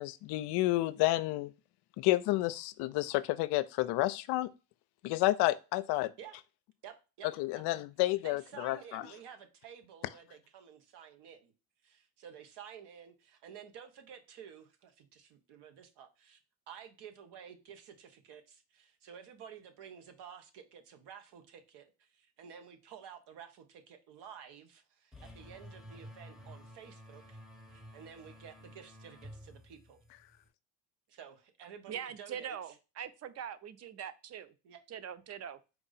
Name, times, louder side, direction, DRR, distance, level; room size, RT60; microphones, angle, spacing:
voice 1, 0.0-1.5 2.0-4.5 5.0-6.1 7.4-9.0, left 17 dB, 60° left, 0.5 m, -30 dB
voice 2, 6.8-7.6 8.2-11.5 11.8-16.4 16.7-27.4 27.7-30.0 31.1-32.7 34.6-34.8, right 8 dB, 60° right, 1.1 m, -52 dB
sound 1, 25.1-30.5, equal, ahead, 1.0 m, -52 dB
voice 3, 31.9-34.5 34.9-35.6, right 8 dB, 35° right, 0.5 m, -42 dB
4.5 x 2.6 x 4.0 m
supercardioid pair, 75°, 45 cm